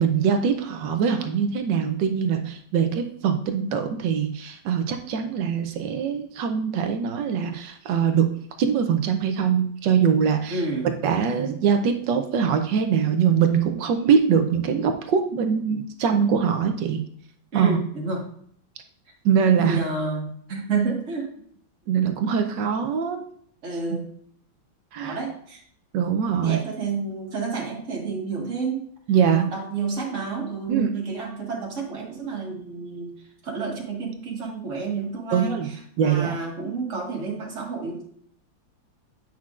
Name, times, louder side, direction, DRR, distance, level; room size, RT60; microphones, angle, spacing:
voice 1, 0.0-10.6 11.0-17.0 17.5-17.8 19.2-19.8 21.9-23.2 24.9-25.2 25.9-26.6 29.1-29.5 30.7-30.9 35.3-35.7 36.0-36.4, right 7 dB, 70° right, 6 dB, 1.2 m, -22 dB
voice 2, 10.5-10.9 17.5-18.2 19.5-21.3 22.1-22.2 23.6-24.1 25.0-25.6 26.3-28.9 29.5-33.1 33.4-35.8 36.0-38.0, right 4 dB, 40° right, -1 dB, 1.7 m, -30 dB
8.8 x 5.8 x 2.4 m, 0.62 s
omnidirectional pair, 2.1 m